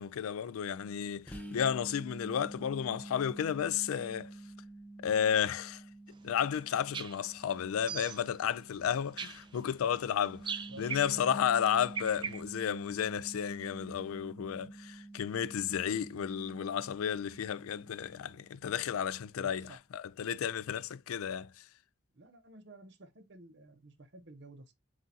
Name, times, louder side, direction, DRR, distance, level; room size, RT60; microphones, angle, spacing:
voice 1, 0.0-4.3 5.0-5.8 6.2-19.7 19.9-21.6, left 8 dB, 90° left, 0.4 m, -33 dB
sound 1, 1.3-18.8, right 2 dB, 5° left, 0.7 m, -49 dB
sound 2, 6.6-6.7 6.9-7.3 7.7-8.4 9.2-9.6 10.4-11.3 11.9-12.4, right 6 dB, 20° right, 0.3 m, -39 dB
voice 2, 10.7-11.4 19.3-19.8 22.1-24.7, right 1 dB, 55° right, 0.9 m, -52 dB
7.4 x 2.5 x 2.8 m
head